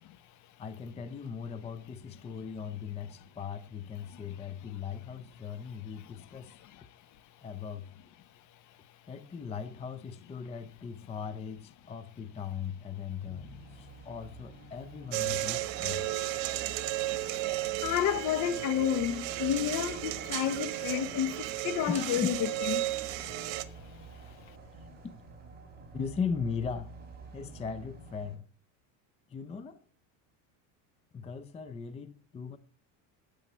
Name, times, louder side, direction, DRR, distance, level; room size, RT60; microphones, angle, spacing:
voice 1, 0.6-6.6 7.4-7.9 9.1-16.1 21.9-22.3 23.1-23.4 24.1-24.4 25.9-27.0 27.3-28.4 29.3-29.8 31.1-32.6, left 6 dB, 15° left, 0.5 m, -38 dB
sound 1, 13.2-28.4, right 3 dB, 25° right, 3.6 m, -50 dB
sound 2, 15.1-23.6, right 16 dB, 85° right, 1.0 m, -34 dB
voice 2, 17.8-22.4 22.7-22.8, left 10 dB, 45° left, 0.8 m, -30 dB
9.8 x 8.2 x 5.5 m
cardioid pair, 130°, 40 cm